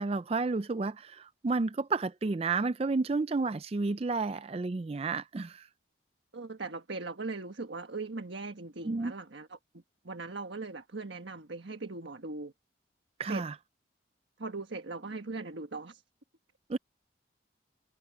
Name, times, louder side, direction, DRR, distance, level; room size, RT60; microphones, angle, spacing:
voice 1, 0.0-5.7 8.9-9.1 13.2-13.5 16.7-16.8, right 3 dB, 30° right, 0.4 m, -31 dB
voice 2, 6.3-12.5 13.3-13.4 14.4-16.0, right 3 dB, 75° right, 1.4 m, -40 dB
head